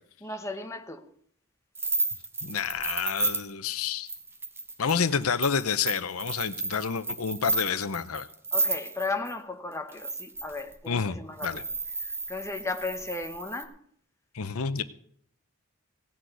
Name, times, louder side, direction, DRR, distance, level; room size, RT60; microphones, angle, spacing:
voice 1, 0.2-1.1 8.5-11.6 12.0-13.7, left 3 dB, 15° left, 1.0 m, -35 dB
sound 1, 1.7-9.3 9.9-10.7 11.4-13.6, right 2 dB, 10° right, 1.1 m, -32 dB
voice 2, 2.4-4.1 4.8-8.3 10.9-11.2 11.4-11.6 14.3-14.8, left 6 dB, 85° left, 0.8 m, -29 dB
17.0 x 6.3 x 8.0 m
head